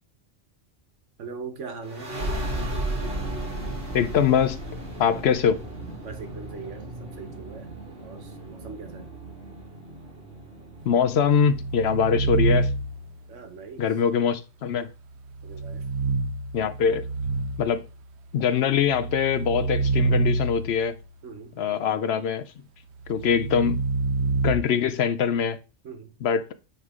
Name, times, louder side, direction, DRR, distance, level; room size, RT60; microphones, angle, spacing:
voice 1, 1.2-2.1 6.0-7.7 8.0-9.1 13.3-13.8 15.4-15.9 21.2-21.8 25.8-26.1, right 5 dB, 85° right, 1.4 m, -41 dB
sound 1, 1.8-13.1, right 1 dB, 50° right, 2.3 m, -35 dB
voice 2, 3.9-4.6 5.0-5.6 10.8-12.7 13.8-14.9 16.5-17.0 17.6-17.8 18.3-20.9 21.6-22.4 23.1-23.8 24.4-25.6 26.2-26.5, left 7 dB, 65° left, 0.8 m, -23 dB
sound 2, 10.9-13.2 15.3-17.9 18.5-21.0 23.0-24.5, right 4 dB, 70° right, 0.9 m, -27 dB
9.4 x 3.4 x 3.6 m
omnidirectional pair, 1.2 m